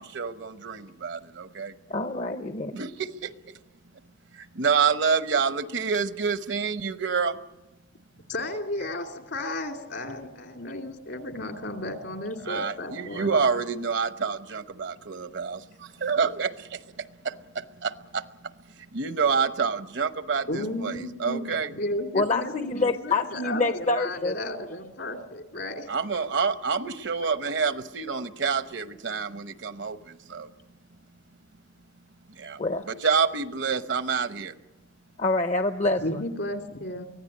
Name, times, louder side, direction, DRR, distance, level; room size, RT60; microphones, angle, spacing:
voice 1, 0.0-1.7 2.7-3.6 4.3-7.4 12.5-21.8 25.9-30.5 32.3-32.6 32.9-34.5, right 5 dB, 70° right, 12 dB, 0.9 m, -28 dB
voice 2, 1.9-2.7 22.1-24.4 32.6-32.8 35.2-36.2, left 3 dB, 35° left, 8 dB, 0.7 m, -26 dB
voice 3, 8.3-13.3 20.5-21.4 21.7-25.9 36.0-37.1, left 1 dB, 70° left, 4 dB, 2.6 m, -33 dB
24.0 x 16.0 x 9.8 m, 1.1 s
head